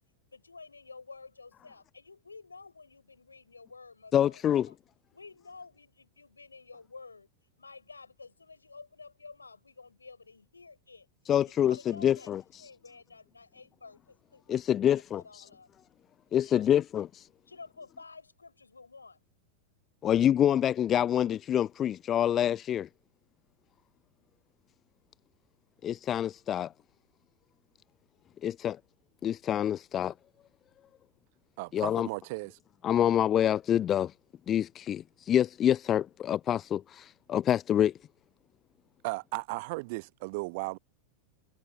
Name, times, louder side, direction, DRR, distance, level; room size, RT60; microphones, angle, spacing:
voice 1, 0.3-4.4 4.7-4.8 5.1-7.3 7.6-11.1 11.4-12.3 12.6-15.7 16.4-16.8 17.5-19.2, left 4 dB, 80° left, 6.1 m, -51 dB
voice 2, 4.1-4.7 11.3-12.4 14.5-15.4 16.3-17.1 20.0-22.9 25.8-26.7 28.4-28.8 29.2-30.1 31.7-32.1 32.8-34.1 34.5-37.9, left 10 dB, 30° left, 0.4 m, -26 dB
voice 3, 31.6-32.6 39.0-40.8, right 26 dB, 50° right, 0.9 m, -35 dB
figure-of-eight pair, 90°, 0 cm